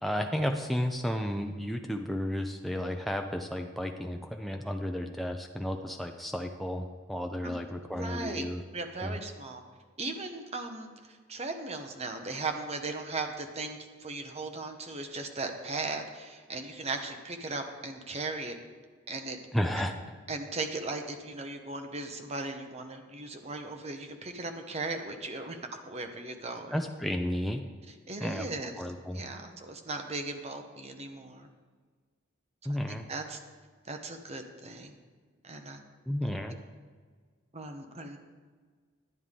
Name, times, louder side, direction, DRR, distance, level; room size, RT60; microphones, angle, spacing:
voice 1, 0.0-8.6 9.0-9.2 19.5-19.9 26.7-27.6 28.2-28.5 28.8-29.2 32.7-33.1 36.1-36.6, equal, ahead, 3 dB, 0.5 m, -32 dB
voice 2, 7.9-8.5 8.7-9.6 10.0-18.6 19.1-19.4 19.8-19.9 20.3-25.6 25.9-26.8 27.9-28.8 29.1-31.5 32.9-33.4 33.9-35.0 35.4-35.8 37.5-38.2, right 3 dB, 35° right, 5 dB, 1.0 m, -37 dB
11.0 x 10.0 x 3.7 m, 1.6 s
head